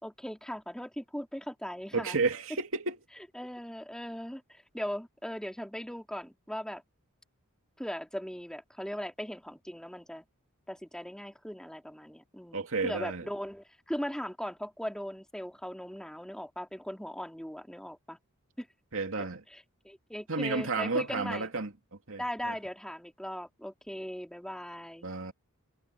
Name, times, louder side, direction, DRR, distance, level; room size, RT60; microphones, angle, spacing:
voice 1, 0.0-2.2 3.2-6.8 7.8-10.2 10.7-18.2 18.6-18.7 19.2-21.5 22.2-25.1, equal, 5° left, 2.9 m, -39 dB
voice 2, 1.9-3.0 12.5-13.2 18.9-19.4 20.3-21.7 22.1-22.5 25.0-25.3, right 4 dB, 65° right, 2.7 m, -31 dB
head